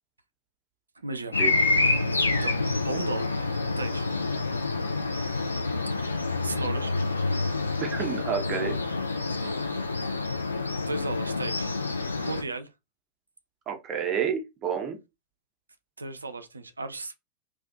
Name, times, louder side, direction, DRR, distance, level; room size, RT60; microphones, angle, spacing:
voice 1, 1.0-1.4 2.4-2.6 2.8-3.4 3.8-4.1 6.4-6.9 7.2-7.6 9.4-9.7 10.0-10.2 10.9-11.8 12.2-12.7 16.0-17.1, right 2 dB, 80° right, 0.3 m, -35 dB
sound 1, 1.3-12.4, left 3 dB, 80° left, 0.3 m, -27 dB
voice 2, 7.8-8.8 13.7-15.0, right 7 dB, 30° right, 0.7 m, -29 dB
2.4 x 2.2 x 2.4 m
figure-of-eight pair, 90°, 0 cm